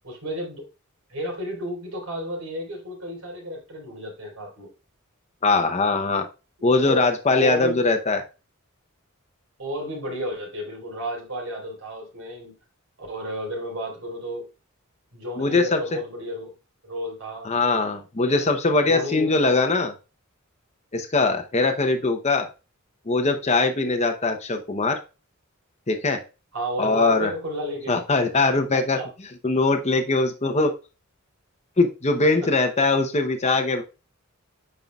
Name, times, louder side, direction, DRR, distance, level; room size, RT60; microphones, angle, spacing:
voice 1, 0.0-0.7 1.1-4.7 6.6-7.0 7.3-7.8 9.6-12.5 13.0-14.5 15.1-16.6 16.8-17.5 18.3-18.5 18.8-19.6 26.5-28.0 28.7-29.1, equal, 80° right, 0 dB, 4.0 m, -32 dB
voice 2, 5.4-6.2 6.6-8.2 15.4-15.8 17.4-19.9 20.9-22.5 23.1-25.0 25.9-26.2 26.8-27.3 27.9-29.0 29.4-30.7 31.8-33.8, left 3 dB, 30° left, 5 dB, 0.8 m, -21 dB
9.2 x 5.6 x 2.3 m, 0.30 s
head